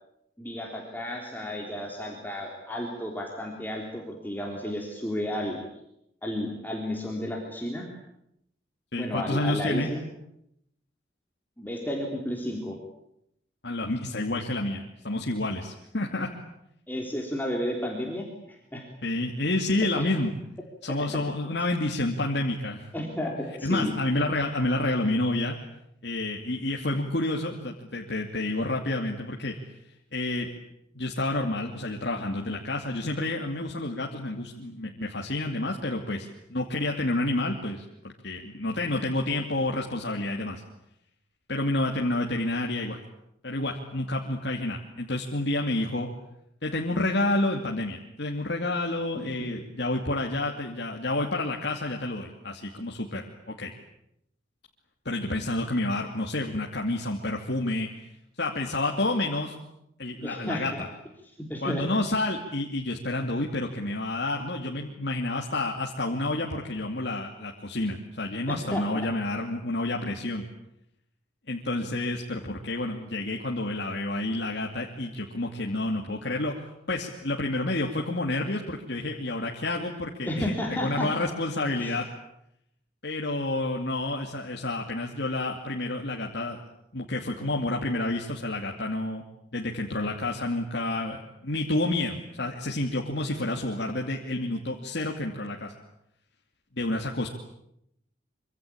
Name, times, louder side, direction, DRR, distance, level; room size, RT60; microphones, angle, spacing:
voice 1, 0.4-5.6 6.2-7.9 8.9-10.0 11.6-12.8 16.9-18.8 20.0-20.1 22.9-23.9 60.2-60.9 61.4-61.8 68.5-69.1 80.3-81.1 81.8-82.0, equal, 10° left, 0 dB, 3.7 m, -32 dB
voice 2, 8.9-9.9 13.6-16.3 19.0-20.3 20.8-22.9 23.6-25.6 26.0-29.5 30.1-30.5 30.9-40.6 41.5-43.0 43.4-46.1 46.6-53.7 55.0-58.1 58.4-59.6 60.0-60.9 61.6-70.4 71.5-76.5 76.9-82.1 83.0-86.6 86.9-89.2 89.5-95.7 96.8-97.3, left 2 dB, 65° left, 0 dB, 2.7 m, -29 dB
26.0 x 25.5 x 8.7 m, 0.79 s
head